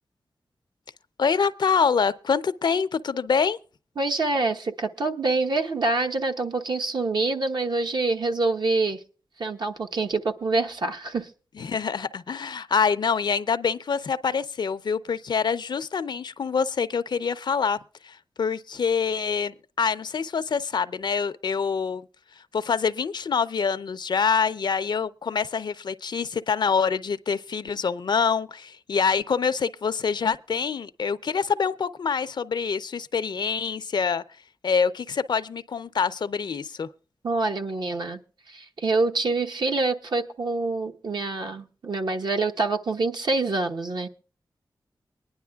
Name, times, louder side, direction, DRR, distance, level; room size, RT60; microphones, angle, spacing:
voice 1, 1.2-3.6 11.6-22.0 22.5-34.2 34.6-36.9, left 6 dB, 70° left, 0.5 m, -25 dB
voice 2, 4.0-9.0 9.4-11.3 37.2-38.2 38.5-44.1, right 3 dB, 65° right, 1.1 m, -26 dB
23.5 x 10.5 x 2.3 m
wide cardioid pair, 80°, 8 cm